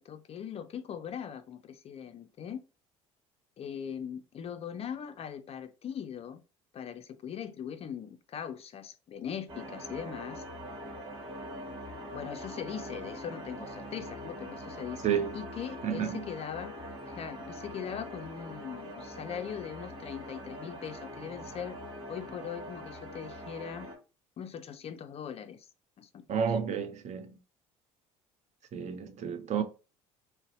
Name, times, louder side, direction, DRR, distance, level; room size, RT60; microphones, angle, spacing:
voice 1, 0.0-2.6 3.6-6.4 6.7-10.4 12.1-16.7 17.1-21.8 22.1-23.9 24.4-25.7 26.0-26.2, left 8 dB, 40° left, 0.4 m, -40 dB
sound 1, 9.5-24.0, equal, 25° right, 1.4 m, -43 dB
voice 2, 15.8-16.2 26.3-27.4 28.7-29.6, right 7 dB, 45° right, 0.6 m, -31 dB
2.6 x 2.0 x 3.9 m
hypercardioid pair, 70°, 16 cm